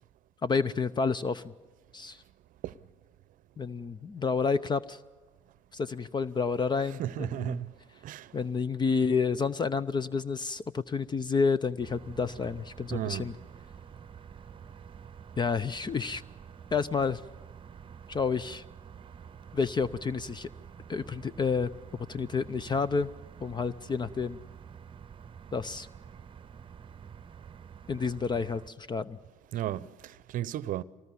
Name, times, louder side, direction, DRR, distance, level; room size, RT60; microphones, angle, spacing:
voice 1, 0.4-1.4 1.9-2.2 3.6-5.0 5.7-7.6 8.3-13.3 15.4-16.2 16.7-17.2 18.1-18.6 19.5-20.5 20.9-21.7 22.1-23.1 23.4-24.4 25.5-25.9 27.9-29.2, left 5 dB, 25° left, 0.6 m, -29 dB
voice 2, 7.0-7.7 8.0-8.3 12.9-13.3 29.5-30.8, right 12 dB, 55° right, 0.7 m, -34 dB
sound 1, 11.8-28.7, right 7 dB, 30° right, 0.9 m, -48 dB
24.0 x 19.5 x 7.0 m
hypercardioid pair, 65°, 17 cm